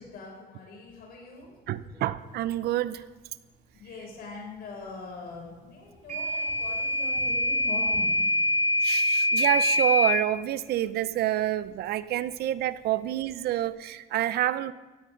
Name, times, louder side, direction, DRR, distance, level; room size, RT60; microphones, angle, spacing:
voice 1, 0.0-1.6 3.7-8.2 9.0-9.1, left 3 dB, 65° left, -1 dB, 6.4 m, -42 dB
voice 2, 1.7-3.0 8.8-14.7, right 13 dB, 70° right, 15 dB, 0.7 m, -28 dB
Microwave oven / Alarm, 6.1-10.2, left 1 dB, 50° right, 5.4 m, -25 dB
16.5 x 16.5 x 3.9 m, 1.2 s
cardioid pair, 110°, 17 cm